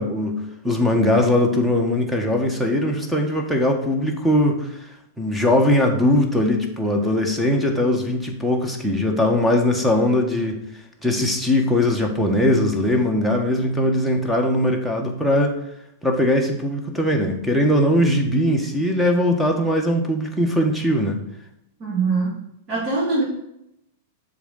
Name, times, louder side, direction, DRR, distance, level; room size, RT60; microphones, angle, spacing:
voice 1, 0.0-4.9 5.2-10.6 11.0-15.6 16.0-21.2, left 1 dB, ahead, 2 dB, 1.5 m, -20 dB
voice 2, 21.8-23.2, right 3 dB, 35° right, -7 dB, 2.5 m, -23 dB
6.9 x 3.9 x 6.3 m, 0.79 s
hypercardioid pair, 105°, 0 cm